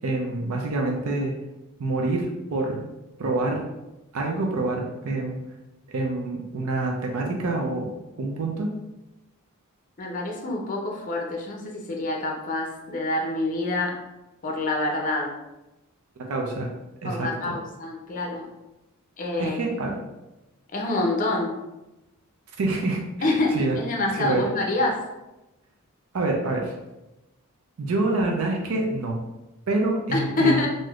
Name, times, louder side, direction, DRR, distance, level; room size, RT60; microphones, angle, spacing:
voice 1, 0.0-1.3 1.8-2.9 3.2-3.6 4.1-5.4 5.9-7.9 8.2-8.7 16.3-16.7 17.0-17.5 19.4-20.0 22.6-23.7 24.1-24.5 26.1-26.7 27.8-29.2 29.7-30.7, right 2 dB, 75° right, 0 dB, 0.5 m, -26 dB
voice 2, 10.0-14.0 14.4-15.4 17.0-18.5 19.2-19.6 20.7-21.5 23.2-25.0 30.1-30.7, left 2 dB, 35° left, 0 dB, 0.5 m, -26 dB
3.4 x 2.6 x 2.3 m, 0.98 s
head